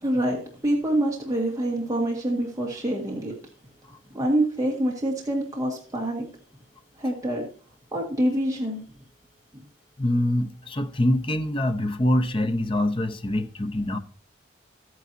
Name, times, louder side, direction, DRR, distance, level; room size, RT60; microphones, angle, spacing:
voice 1, 0.0-3.3 4.1-6.3 7.0-7.5 7.9-8.8, right 1 dB, 15° right, 1.9 m, -26 dB
voice 2, 10.0-14.0, left 1 dB, 25° left, 0.8 m, -24 dB
13.0 x 9.4 x 2.7 m
head